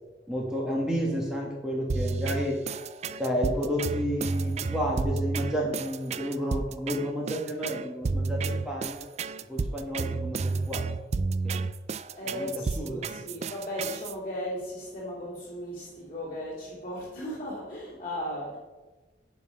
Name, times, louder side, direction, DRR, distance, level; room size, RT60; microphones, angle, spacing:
voice 1, 0.3-2.6 3.2-9.0 9.5-10.9 11.4-11.6 12.3-13.4, equal, 5° right, -3 dB, 1.6 m, -31 dB
sound 1, 1.9-14.1, right 4 dB, 35° right, 0.3 m, -31 dB
voice 2, 12.1-18.6, equal, 30° left, -10 dB, 2.7 m, -36 dB
10.5 x 5.5 x 5.1 m, 1.2 s
head